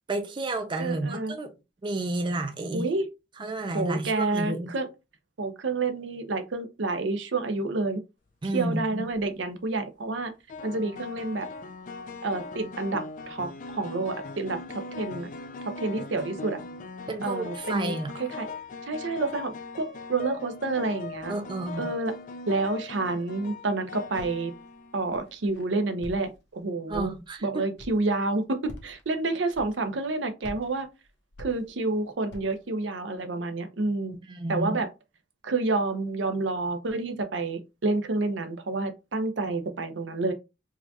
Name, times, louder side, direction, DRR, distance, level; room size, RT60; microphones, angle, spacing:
voice 1, 0.1-1.5 1.8-2.9 3.4-4.7 8.4-9.1 17.1-18.1 21.3-21.9 26.9-27.6 34.3-34.7, right 2 dB, 25° right, 0.4 m, -31 dB
voice 2, 0.8-1.3 2.7-3.1 3.7-4.9 5.4-8.0 8.4-10.3 10.6-11.5 12.2-15.3 15.6-16.6 17.2-17.9 18.2-18.5 18.9-21.3 21.8-22.1 22.5-24.5 24.9-27.1 27.4-30.9 31.4-34.2 34.5-34.9 35.4-40.3, right 3 dB, 75° right, 0.6 m, -29 dB
sound 1, 8.9-9.2 10.5-25.3, left 3 dB, 45° left, 0.4 m, -40 dB
Walk footsteps, 24.2-24.6 25.1-25.6 26.0-26.5 26.9-27.4 27.8-28.1 28.6-29.0 29.5-30.0 30.4-31.9 32.3-32.7, left 1 dB, 65° left, 0.8 m, -45 dB
4.7 x 2.3 x 2.7 m
head